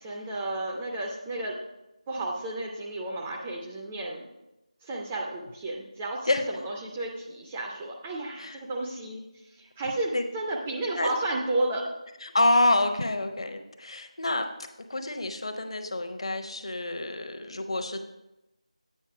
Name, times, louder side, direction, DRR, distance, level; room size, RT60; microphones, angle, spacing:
voice 1, 0.0-1.6 2.1-4.2 4.8-9.2 9.6-11.9, right 2 dB, 10° right, -2 dB, 0.4 m, -32 dB
voice 2, 12.2-14.5 14.9-18.0, left 2 dB, 50° left, 6 dB, 0.8 m, -27 dB
8.5 x 5.3 x 4.7 m, 0.93 s
figure-of-eight pair, 165°, 4 cm